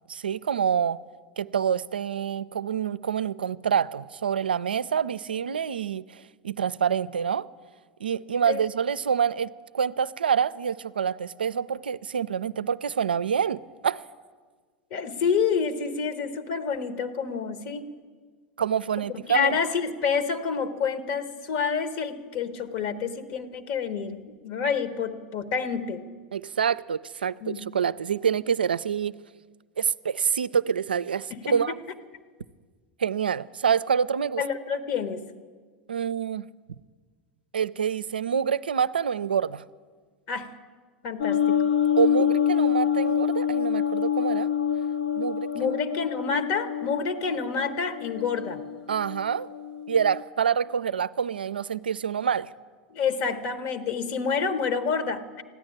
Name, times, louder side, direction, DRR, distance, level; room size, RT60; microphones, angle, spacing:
voice 1, 0.1-1.0 1.4-7.5 8.0-14.0 18.6-19.5 26.3-29.1 29.8-31.7 33.0-34.4 35.9-36.5 37.5-39.6 42.0-44.5 45.2-45.8 48.9-49.5 49.9-52.5, right 7 dB, 90° right, 0.3 m, -26 dB
voice 2, 14.9-17.9 19.3-26.0 27.4-27.6 31.3-31.6 34.4-35.2 40.3-40.5 41.0-41.6 45.5-48.6 52.9-55.4, left 6 dB, 55° left, 1.3 m, -28 dB
sound 1, 41.2-50.2, left 8 dB, 75° left, 0.6 m, -26 dB
14.5 x 10.5 x 8.8 m
hypercardioid pair, 90°, 5 cm